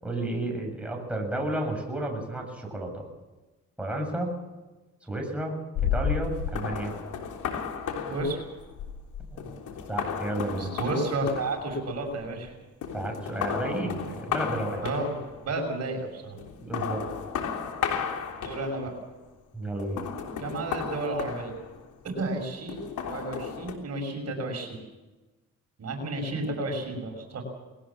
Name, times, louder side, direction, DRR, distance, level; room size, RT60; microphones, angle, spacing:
voice 1, 0.0-3.0 3.8-4.3 5.0-6.9 9.3-9.5 9.9-10.7 12.9-14.9 16.6-17.0 19.5-20.0, right 1 dB, 5° right, 1 dB, 7.3 m, -32 dB
sound 1, 5.7-12.5 12.8-15.5 16.4-19.0 19.8-22.0 22.7-23.7, left 7 dB, 80° left, 3.4 m, -33 dB
voice 2, 8.1-8.4 10.6-12.5 14.8-15.2 15.4-16.4 18.4-18.9 20.4-21.5 22.0-24.8 25.8-27.4, right 2 dB, 55° right, 2 dB, 6.4 m, -31 dB
21.0 x 18.5 x 7.4 m, 1.2 s
cardioid pair, 90°, 30 cm